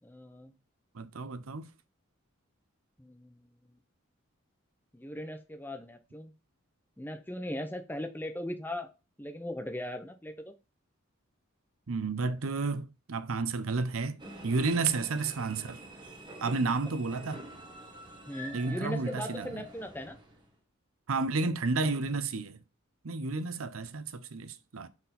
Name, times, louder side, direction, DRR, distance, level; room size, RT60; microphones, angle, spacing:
voice 1, 0.0-0.5 3.0-3.8 4.9-6.3 7.0-8.9 9.2-10.5 18.3-20.2, left 1 dB, 10° left, 0.7 m, -39 dB
voice 2, 0.9-1.7 11.9-15.8 16.4-17.4 18.5-19.5 21.1-22.6 23.0-24.9, right 3 dB, 85° right, 0.7 m, -31 dB
sound 1, 14.2-20.5, right 1 dB, 20° right, 1.5 m, -46 dB
5.8 x 4.4 x 4.1 m
head